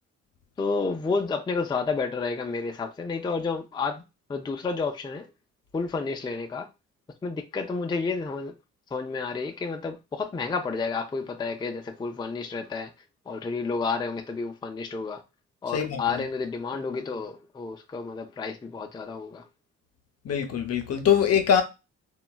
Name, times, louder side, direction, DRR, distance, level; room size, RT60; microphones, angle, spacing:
voice 1, 0.6-4.0 4.3-5.3 5.7-6.7 7.2-8.5 8.9-12.9 13.3-15.2 15.6-19.4, left 4 dB, 15° left, 0.4 m, -30 dB
voice 2, 15.7-16.2 20.2-21.6, left 8 dB, 55° left, 0.7 m, -23 dB
3.0 x 2.2 x 2.2 m
cardioid pair, 90°, 30 cm